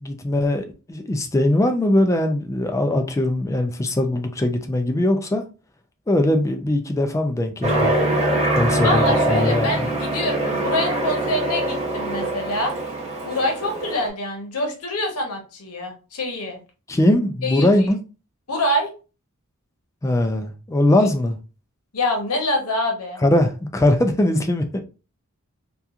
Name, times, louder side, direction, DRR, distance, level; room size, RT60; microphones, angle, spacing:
voice 1, 0.0-5.4 6.1-8.0 8.6-9.9 16.9-18.0 20.0-21.4 23.2-24.8, left 1 dB, 15° left, 0.3 m, -21 dB
Aircraft, 7.6-14.1, right 1 dB, 30° right, 0.8 m, -23 dB
voice 2, 8.8-12.7 13.2-16.6 17.4-17.7 18.5-18.9 21.9-23.2, left 1 dB, 85° left, 0.8 m, -25 dB
2.8 x 2.3 x 2.4 m
head